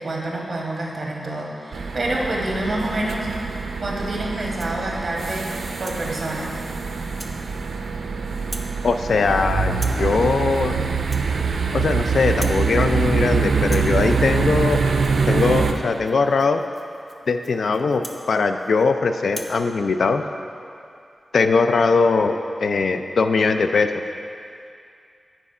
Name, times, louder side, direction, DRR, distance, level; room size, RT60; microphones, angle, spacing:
voice 1, 0.0-3.3 3.8-5.4 5.8-6.5, right 1 dB, 45° right, -2 dB, 1.3 m, -27 dB
sound 1, 1.7-15.7, right 5 dB, 75° right, 0.5 m, -24 dB
Rattle (instrument), 4.4-4.8 5.3-6.0 6.5-6.7 7.2-7.4 7.7-8.1 8.4-8.8 9.0-9.4 9.7-10.1 10.4-10.7 11.0-12.0 12.2-12.7 13.0-13.3 13.6-18.9 19.2-19.6, right 1 dB, 10° right, 0.6 m, -41 dB
voice 2, 8.8-10.7 11.7-14.8 15.3-16.6 17.3-20.2 21.3-23.9, left 4 dB, 70° left, 7 dB, 0.4 m, -20 dB
8.7 x 4.5 x 5.4 m, 2.5 s
wide cardioid pair, 120°, 0 cm